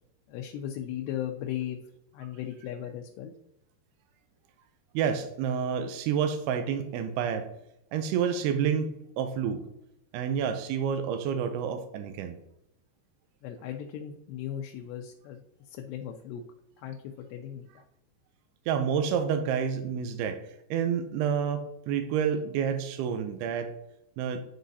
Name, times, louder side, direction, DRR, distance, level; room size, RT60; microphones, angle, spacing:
voice 1, 0.3-1.8 2.1-3.3 13.4-15.4 15.7-16.4 16.8-17.8, left 10 dB, 85° left, 3 dB, 2.6 m, -37 dB
voice 2, 4.9-7.5 7.9-9.7 10.1-12.4 18.7-20.4 20.7-23.7 24.2-24.4, right 7 dB, 85° right, 8 dB, 2.2 m, -29 dB
10.5 x 3.8 x 2.7 m, 0.84 s
omnidirectional pair, 5.0 m